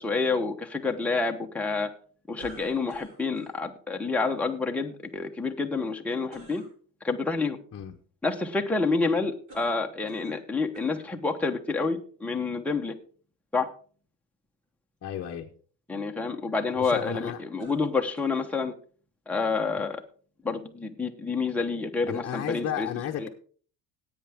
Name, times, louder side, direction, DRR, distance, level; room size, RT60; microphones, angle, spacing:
voice 1, 0.0-1.9 2.3-6.6 7.0-7.6 8.2-12.9 13.5-13.7 15.9-18.7 19.3-20.0 20.4-22.9 23.2-23.3, left 4 dB, 5° left, 2 dB, 0.9 m, -28 dB
sound 1, 2.4-3.6 6.3-6.7 9.5-10.5 10.7-11.1 11.9-12.0 17.6-18.5, right 1 dB, 75° right, 7.3 m, -50 dB
voice 2, 15.0-15.5 16.8-17.4 22.1-23.3, left 10 dB, 35° left, 1 dB, 0.9 m, -33 dB
16.0 x 8.8 x 3.6 m, 0.44 s
cardioid pair, 150°, 43 cm